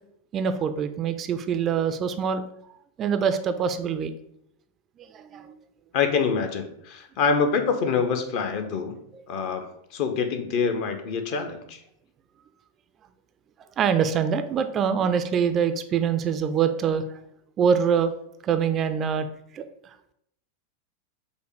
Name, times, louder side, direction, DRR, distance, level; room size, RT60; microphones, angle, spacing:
voice 1, 0.3-2.4 3.0-4.1 5.0-5.5 13.8-17.1 17.6-18.1 18.4-19.3 19.5-19.6, right 7 dB, 30° right, 9 dB, 0.3 m, -24 dB
voice 2, 5.9-9.0 9.3-11.8, left 5 dB, 45° left, 7 dB, 0.6 m, -26 dB
5.3 x 2.1 x 4.7 m, 0.75 s
figure-of-eight pair, 90°, 0 cm